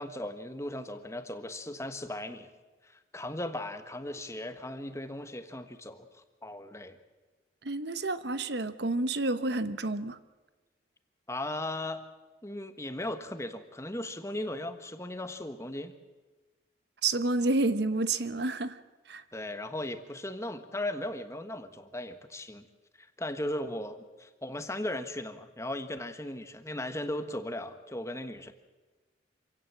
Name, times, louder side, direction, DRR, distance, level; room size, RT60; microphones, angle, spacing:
voice 1, 0.0-2.5 2.8-7.0 11.3-12.0 12.4-15.9 19.3-22.7 23.0-28.5, left 1 dB, 15° left, 1.4 m, -37 dB
voice 2, 7.6-10.2 17.0-18.8 19.1-19.2, right 2 dB, 60° right, 1.0 m, -29 dB
26.5 x 17.0 x 7.6 m
head